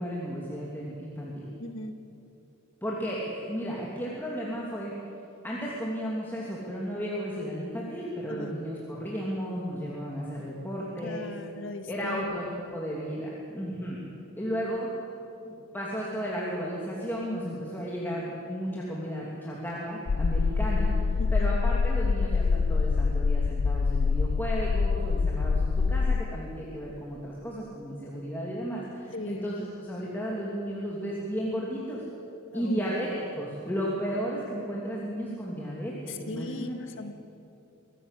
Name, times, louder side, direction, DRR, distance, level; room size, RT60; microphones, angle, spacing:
voice 1, 0.0-1.5 2.8-4.9 5.4-11.3 11.9-14.0 14.3-14.9 15.4-32.0 32.5-36.8, equal, 10° left, -5 dB, 2.8 m, -34 dB
voice 2, 1.6-1.9 8.3-8.6 11.0-12.7 21.2-21.5 29.1-29.6 32.5-33.1 36.1-37.1, left 2 dB, 65° left, 7 dB, 1.8 m, -39 dB
sound 1, 20.1-26.6, left 4 dB, 90° left, 0.5 m, -25 dB
24.5 x 16.0 x 8.3 m, 2.7 s
head